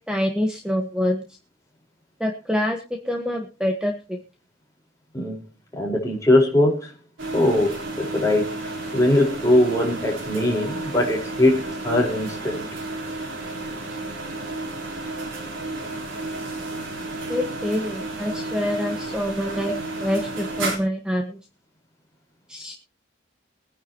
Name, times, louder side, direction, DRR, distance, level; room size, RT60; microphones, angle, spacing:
voice 1, 0.1-1.2 2.2-4.2 17.3-21.4 22.5-22.7, left 1 dB, 5° right, 3 dB, 1.4 m, -26 dB
voice 2, 5.7-6.9 7.3-12.7, left 1 dB, 15° left, 0 dB, 4.7 m, -21 dB
sound 1, 7.2-20.8, right 2 dB, 90° right, 4.0 m, -32 dB
23.5 x 10.0 x 3.0 m, 0.34 s
head